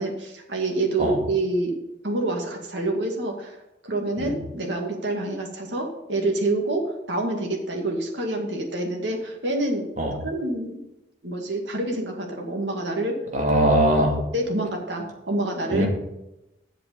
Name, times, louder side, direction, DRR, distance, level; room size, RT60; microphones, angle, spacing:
voice 1, 0.0-1.7 2.0-3.6 3.8-9.9 10.2-10.8 11.2-13.2 14.3-15.9, right 2 dB, 80° right, 1 dB, 2.1 m, -27 dB
voice 2, 13.3-14.1 15.7-15.9, right 1 dB, 45° right, 0 dB, 2.3 m, -20 dB
8.0 x 6.8 x 8.4 m, 0.91 s
head